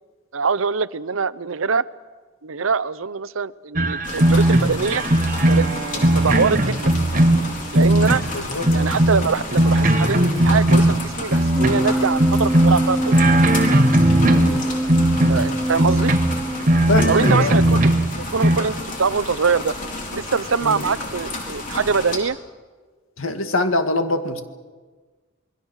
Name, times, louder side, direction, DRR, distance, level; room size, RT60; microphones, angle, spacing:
voice 1, 0.3-1.9 2.4-5.0 5.5-5.7 6.1-6.9 7.7-8.2 8.7-13.2 15.3-16.1 17.1-17.8 18.3-19.7 20.1-22.4, right 5 dB, 85° right, 17 dB, 0.7 m, -23 dB
sound 1, 3.8-8.3 8.6-11.9 12.2-14.6 14.9-18.6, right 1 dB, 40° right, 1.4 m, -18 dB
sound 2, 4.0-22.2, left 2 dB, 40° left, 4.4 m, -32 dB
voice 2, 8.3-8.7 14.2-14.6 16.9-17.6 20.6-20.8 23.2-24.4, left 2 dB, 90° left, 7 dB, 2.1 m, -23 dB
Wind instrument woodwind instrument, 11.6-17.0, right 1 dB, 5° left, 2.9 m, -24 dB
27.5 x 22.0 x 6.4 m, 1.4 s
head